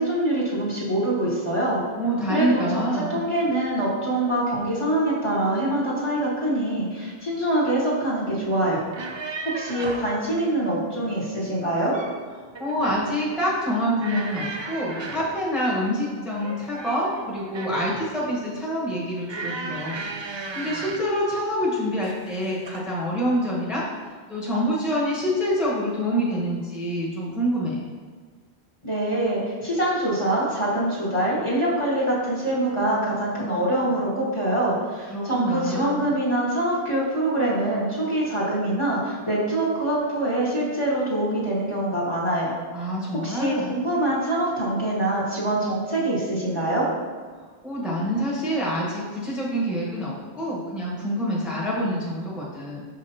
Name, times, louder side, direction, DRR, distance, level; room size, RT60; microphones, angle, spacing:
voice 1, 0.0-1.8 2.3-8.8 9.4-12.0 28.8-42.5 43.1-46.9, right 1 dB, 30° left, -7 dB, 1.2 m, -24 dB
voice 2, 1.9-3.3 12.6-27.8 35.1-36.0 42.7-43.8 47.6-52.8, equal, ahead, -6 dB, 1.1 m, -26 dB
sound 1, 8.9-10.1 11.6-12.2 12.5-13.1 14.0-15.4 16.4-18.1 19.3-21.1 22.0-22.3 22.7-22.9, right 3 dB, 45° right, 0.3 m, -35 dB
6.3 x 5.3 x 2.8 m, 1.5 s
omnidirectional pair, 1.0 m